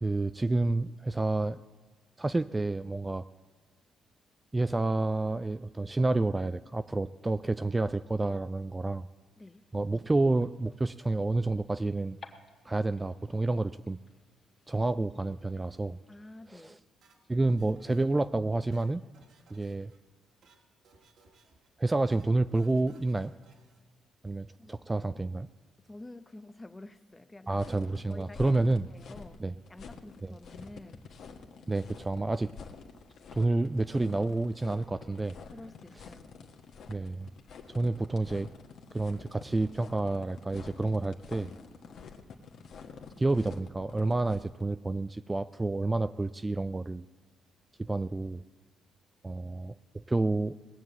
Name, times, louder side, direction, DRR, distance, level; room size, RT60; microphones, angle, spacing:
voice 1, 0.0-1.6 2.2-3.3 4.5-9.1 9.7-12.2 12.7-14.0 14.7-16.0 16.6-16.7 17.3-19.0 19.5-19.9 21.8-23.3 24.2-25.5 27.5-28.9 29.4-29.5 30.2-30.3 31.7-32.5 33.3-35.4 36.9-37.3 37.7-38.5 38.9-41.5 43.2-47.0 47.8-48.4 49.2-50.6, right 2 dB, 15° right, 12 dB, 0.4 m, -29 dB
sound 1, 9.4-16.6, left 4 dB, 40° left, 2.0 m, -59 dB
voice 2, 9.4-9.7 16.1-16.8 24.6-24.8 25.8-27.6 28.1-31.0 32.2-32.4 35.5-36.3, left 2 dB, 15° left, 13 dB, 0.7 m, -49 dB
sound 2, 17.0-18.3 18.6-20.0 20.3-20.6 20.8-21.7 22.0-22.3 22.5-23.8, right 4 dB, 70° right, 2.2 m, -63 dB
sound 3, 27.5-44.6, left 5 dB, 65° left, 1.5 m, -48 dB
19.5 x 7.5 x 8.0 m, 1.4 s
cardioid pair, 90°, 0 cm